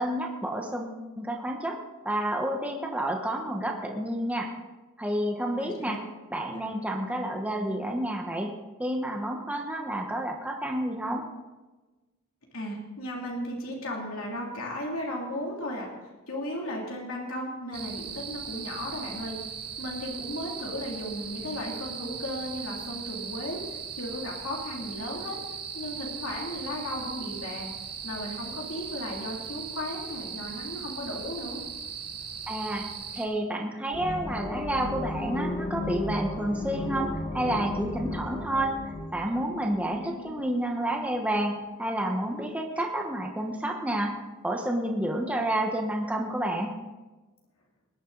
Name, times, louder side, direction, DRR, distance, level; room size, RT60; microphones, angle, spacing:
voice 1, 0.0-1.8 2.0-4.5 5.0-6.0 6.3-8.5 8.8-11.2 32.5-32.9 33.1-44.2 44.4-46.7, right 1 dB, 5° right, 2 dB, 1.2 m, -30 dB
voice 2, 5.6-6.0 6.5-6.7 12.5-15.9 16.3-19.4 19.8-25.4 25.7-27.7 28.0-31.6 39.9-40.4, left 1 dB, 75° left, -2 dB, 2.9 m, -35 dB
sound 1, 17.7-33.3, right 7 dB, 50° right, 1.8 m, -39 dB
sound 2, 33.9-40.6, left 2 dB, 35° left, 1.6 m, -34 dB
20.0 x 10.5 x 4.0 m, 1.2 s
head